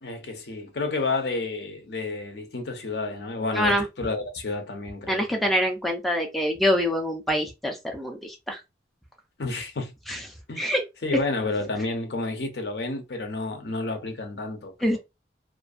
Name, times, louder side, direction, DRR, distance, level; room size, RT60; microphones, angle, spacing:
voice 1, 0.0-5.5 9.4-9.9 10.5-10.7 11.0-15.0, left 3 dB, 65° left, 0.6 m, -30 dB
voice 2, 3.5-3.9 5.1-8.6 10.1-10.2 10.6-10.8 14.8-15.0, equal, ahead, 0.3 m, -25 dB
2.5 x 2.2 x 2.4 m
head